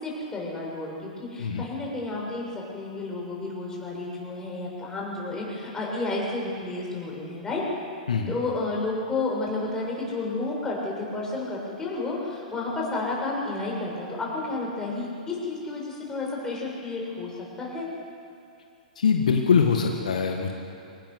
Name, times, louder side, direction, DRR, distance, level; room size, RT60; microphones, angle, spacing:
voice 1, 0.0-7.6 8.3-17.9, left 2 dB, 15° left, -3 dB, 6.8 m, -31 dB
voice 2, 19.0-20.5, left 6 dB, 70° left, 3 dB, 1.8 m, -23 dB
24.0 x 18.5 x 6.5 m, 2.5 s
figure-of-eight pair, 110°, 4 cm